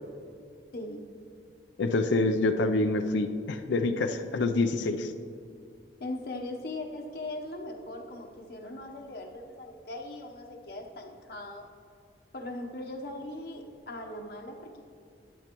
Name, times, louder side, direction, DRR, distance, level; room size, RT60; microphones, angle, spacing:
voice 1, 0.7-1.1 6.0-11.7 12.3-14.8, left 2 dB, 55° left, 1 dB, 0.9 m, -39 dB
voice 2, 1.8-5.1, left 2 dB, 85° left, 7 dB, 0.5 m, -26 dB
12.0 x 10.0 x 3.0 m, 2.3 s
head